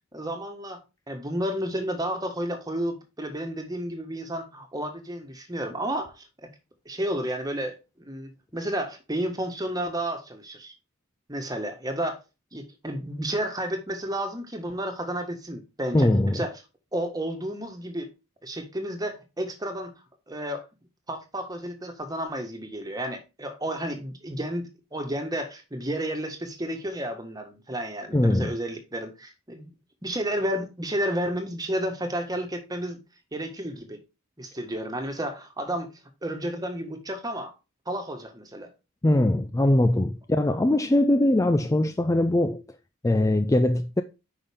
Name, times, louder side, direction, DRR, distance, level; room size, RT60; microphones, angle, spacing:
voice 1, 0.1-0.8 1.1-6.5 6.8-10.7 11.3-12.2 12.5-16.5 16.9-18.1 18.4-19.9 20.3-20.7 21.1-29.7 30.0-33.0 33.3-34.0 34.4-35.9 36.2-37.5 37.8-38.7, right 1 dB, 20° right, 1.6 m, -31 dB
voice 2, 15.9-16.4 28.1-28.5 39.0-42.6 43.0-44.0, left 1 dB, 15° left, 0.4 m, -21 dB
9.1 x 5.6 x 3.6 m
head